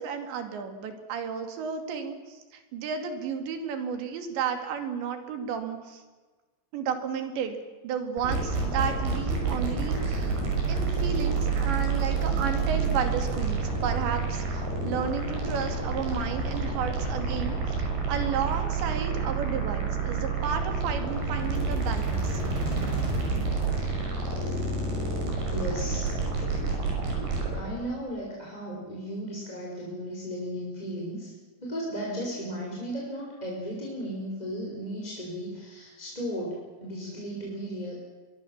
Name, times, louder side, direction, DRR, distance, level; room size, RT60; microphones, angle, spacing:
voice 1, 0.0-6.0 6.7-7.6 7.8-10.4 10.7-22.4, right 7 dB, 70° right, 7 dB, 4.6 m, -33 dB
sound 1, 8.2-27.6, right 4 dB, 55° right, 7.7 m, -28 dB
voice 2, 25.5-26.1 27.5-31.3 31.6-38.0, equal, 10° left, -4 dB, 4.9 m, -35 dB
24.0 x 23.0 x 7.3 m, 1.3 s
omnidirectional pair, 5.3 m